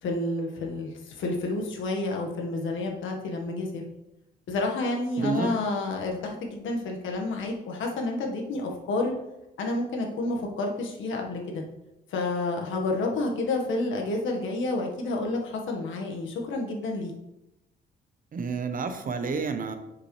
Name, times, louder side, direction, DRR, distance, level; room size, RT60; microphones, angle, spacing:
voice 1, 0.0-3.8 4.5-9.1 9.6-11.6 12.1-17.1, left 2 dB, 75° left, 1 dB, 1.5 m, -29 dB
voice 2, 5.2-5.6 18.3-19.7, right 4 dB, 45° right, 8 dB, 0.9 m, -29 dB
7.0 x 6.2 x 3.2 m, 0.91 s
cardioid pair, 90°, 20 cm